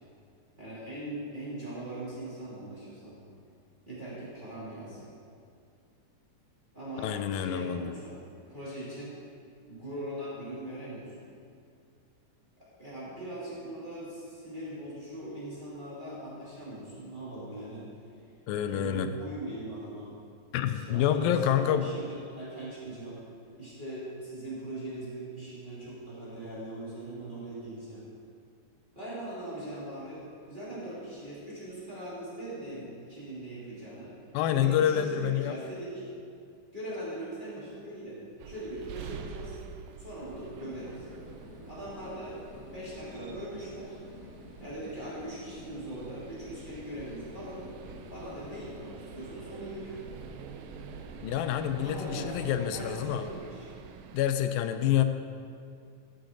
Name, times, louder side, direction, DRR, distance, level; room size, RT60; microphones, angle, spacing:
voice 1, 0.6-3.2 3.9-5.1 6.7-8.2 8.5-9.1 9.7-11.3 12.8-17.9 18.7-20.1 20.7-23.2 23.6-28.0 28.9-34.1 34.5-36.1 36.7-38.2 38.4-39.6 40.0-41.1 41.7-43.9 44.6-47.7 48.1-50.0 51.8-53.7, right 1 dB, 15° right, -10 dB, 2.7 m, -40 dB
voice 2, 7.0-7.9 18.5-19.1 20.5-21.9 34.3-35.6 51.2-53.2 54.1-55.0, left 10 dB, 85° left, 9 dB, 2.3 m, -27 dB
sound 1, 38.4-54.3, right 7 dB, 80° right, 2.0 m, -47 dB
sound 2, 40.2-52.2, left 1 dB, 60° left, 1.0 m, -50 dB
14.0 x 8.6 x 3.9 m, 2.3 s
omnidirectional pair, 4.1 m